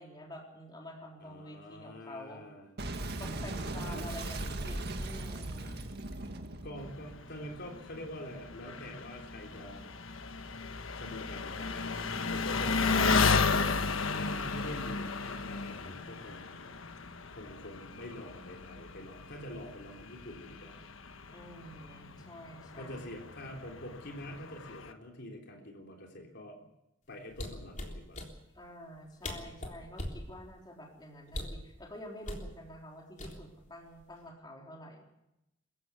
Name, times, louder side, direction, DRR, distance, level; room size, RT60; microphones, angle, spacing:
voice 1, 0.0-2.4 3.2-5.8 12.5-13.2 21.3-23.2 28.5-35.0, equal, 20° left, 0 dB, 3.8 m, -48 dB
voice 2, 1.2-2.6 3.2-4.1 6.6-9.9 11.0-16.8 17.3-20.8 22.8-26.7 27.1-28.2, left 1 dB, 60° left, 1 dB, 3.6 m, -46 dB
Boom, 2.8-8.0, right 2 dB, 55° right, 1.8 m, -38 dB
Engine, 6.8-24.9, left 4 dB, 85° left, 1.3 m, -34 dB
sound 1, 27.3-28.3 29.0-29.1 29.2-30.2 31.3-31.6 32.2-32.5 33.2-33.7 34.0-34.3, left 1 dB, 40° left, 3.6 m, -39 dB
23.5 x 15.0 x 8.3 m, 0.89 s
head